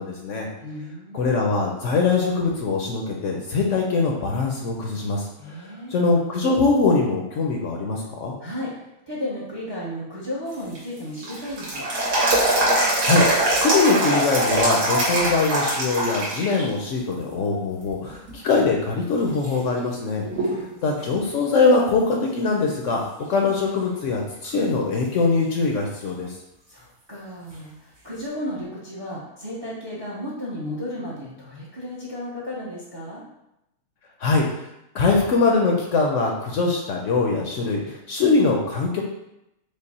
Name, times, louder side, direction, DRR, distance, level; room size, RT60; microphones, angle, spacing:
voice 1, 0.0-0.5 1.1-5.3 5.9-8.3 12.8-13.2 13.6-20.2 20.8-23.0 23.3-26.3 34.2-34.4 34.9-39.0, left 4 dB, 65° left, 0 dB, 0.8 m, -22 dB
voice 2, 0.6-1.3 5.4-6.0 8.4-11.8 20.3-20.9 26.7-33.2, left 1 dB, 30° right, -5 dB, 0.5 m, -34 dB
sound 1, 10.5-16.6 17.0-17.1 17.9-18.3 18.9-19.0 19.4-20.7 21.0-21.1 24.4-24.5 27.5-27.6, right 1 dB, 90° right, 1.8 m, -22 dB
5.2 x 2.0 x 4.1 m, 0.86 s
omnidirectional pair, 1.6 m